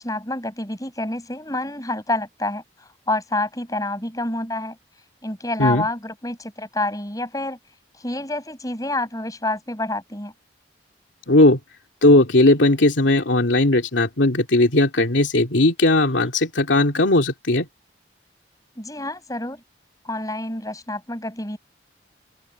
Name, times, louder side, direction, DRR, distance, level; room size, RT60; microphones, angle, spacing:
voice 1, 0.0-4.8 5.2-7.6 8.0-10.3 18.8-19.6 20.0-21.6, left 2 dB, 20° left, 6.4 m, -28 dB
voice 2, 11.3-11.6 12.0-17.7, left 2 dB, 90° left, 2.6 m, -17 dB
open air
head